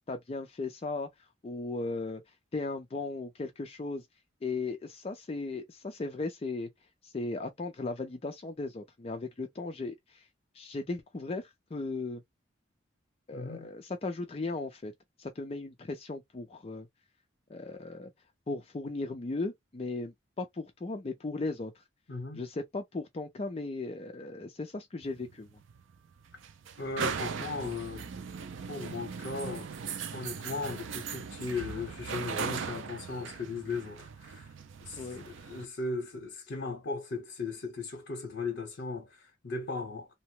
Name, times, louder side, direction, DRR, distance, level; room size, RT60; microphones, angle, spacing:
voice 1, 0.1-1.1 1.4-2.2 2.5-4.1 4.4-6.7 7.0-10.3 10.5-12.2 13.3-14.9 15.2-16.9 17.5-18.1 18.5-21.8 22.4-25.5 35.0-35.2, left 3 dB, 30° left, 0.4 m, -37 dB
voice 2, 13.3-13.7 22.1-22.4 26.8-28.1 28.7-29.7 30.1-34.5 34.8-40.1, left 3 dB, 60° left, 0.8 m, -37 dB
sound 1, 25.0-35.7, right 6 dB, 75° right, 0.4 m, -39 dB
2.8 x 2.1 x 3.0 m
head